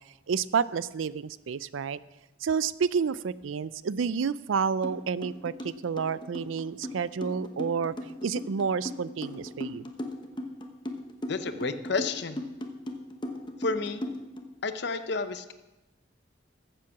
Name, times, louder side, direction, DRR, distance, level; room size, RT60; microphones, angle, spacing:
voice 1, 0.3-2.0 2.4-7.9 8.2-9.9, right 6 dB, 80° right, 18 dB, 0.4 m, -29 dB
sound 1, 4.8-5.0 5.2-14.4, left 1 dB, 25° left, 0.9 m, -36 dB
voice 2, 11.3-12.4 13.6-14.0 14.6-15.5, left 4 dB, 55° left, 11 dB, 0.7 m, -31 dB
14.5 x 7.7 x 5.8 m, 1.0 s
head